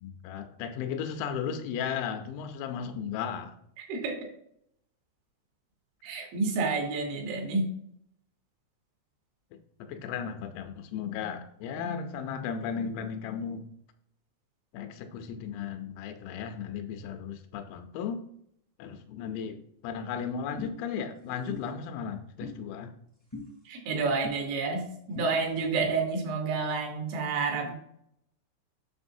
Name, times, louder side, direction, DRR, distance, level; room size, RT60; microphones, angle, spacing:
voice 1, 0.0-3.6 9.8-13.7 14.7-18.2 18.8-22.9, left 7 dB, 85° left, 7 dB, 3.4 m, -35 dB
voice 2, 3.8-4.2 6.0-7.7 23.7-24.8 25.1-27.7, right 4 dB, 75° right, 2 dB, 3.3 m, -29 dB
sound 1, 20.6-20.7 21.5-21.6 22.4-22.5 23.3-23.5 24.2-24.4 25.1-25.3, left 3 dB, 15° left, 0.7 m, -38 dB
7.9 x 6.0 x 2.7 m, 0.71 s
omnidirectional pair, 5.9 m